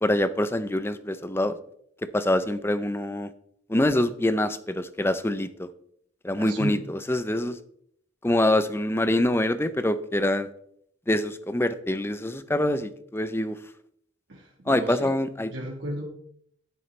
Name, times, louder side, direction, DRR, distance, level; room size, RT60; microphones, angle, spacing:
voice 1, 0.0-1.6 2.1-3.3 3.7-5.7 6.2-7.6 8.2-10.5 11.1-13.6 14.7-15.5, left 1 dB, 15° left, 12 dB, 0.6 m, -25 dB
voice 2, 6.4-6.8 14.3-15.1 15.5-16.0, right 1 dB, 70° right, -2 dB, 1.6 m, -34 dB
11.0 x 11.0 x 3.3 m, 0.68 s
head